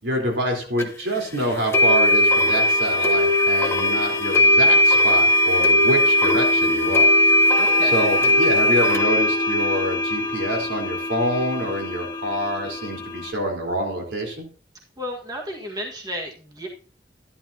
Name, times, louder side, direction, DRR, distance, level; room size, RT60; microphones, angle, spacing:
voice 1, 0.0-7.1 7.8-14.5, equal, 80° right, 0 dB, 4.0 m, -26 dB
sound 1, 0.8-0.9 1.7-13.3, left 1 dB, 15° left, 1.2 m, -19 dB
voice 2, 7.6-8.1 15.0-16.7, equal, 20° right, -1 dB, 1.7 m, -33 dB
13.0 x 11.5 x 2.8 m, 0.40 s
head